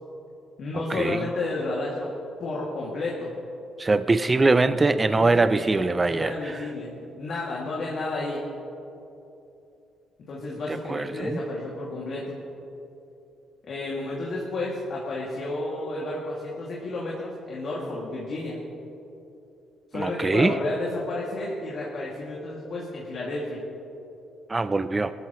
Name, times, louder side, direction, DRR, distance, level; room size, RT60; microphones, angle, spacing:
voice 1, 0.6-2.1 2.4-3.3 5.1-5.7 6.1-8.5 10.3-12.4 13.6-18.6 19.9-23.6, left 2 dB, 60° left, -5 dB, 2.5 m, -31 dB
voice 2, 3.8-6.7 10.7-11.4 19.9-20.5 24.5-25.1, right 3 dB, 25° right, 12 dB, 0.5 m, -23 dB
21.0 x 13.5 x 3.2 m, 2.9 s
cardioid pair, 90°, 0 cm